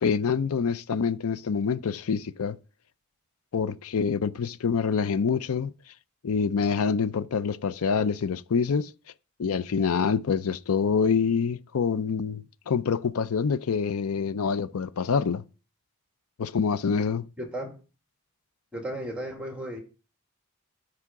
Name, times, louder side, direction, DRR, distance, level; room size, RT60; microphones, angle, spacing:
voice 1, 0.0-2.6 3.5-5.7 6.2-8.9 9.4-15.4 16.4-17.3, left 6 dB, 90° left, 0.5 m, -26 dB
voice 2, 17.4-17.7 18.7-19.8, right 1 dB, 5° right, 2.2 m, -34 dB
13.0 x 4.9 x 3.7 m
head